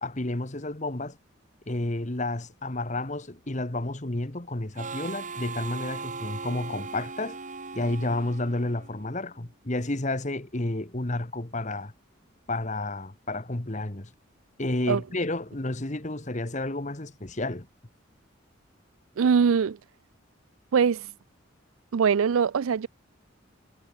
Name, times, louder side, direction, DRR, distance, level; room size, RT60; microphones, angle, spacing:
voice 1, 0.0-1.2 1.7-7.4 7.7-11.9 12.5-14.1 14.6-17.7, left 2 dB, 35° left, 1.4 m, -31 dB
Harmonica, 4.7-9.2, right 4 dB, 35° right, 2.0 m, -38 dB
voice 2, 19.2-19.8 20.7-21.1 21.9-22.9, right 6 dB, 80° right, 0.4 m, -22 dB
head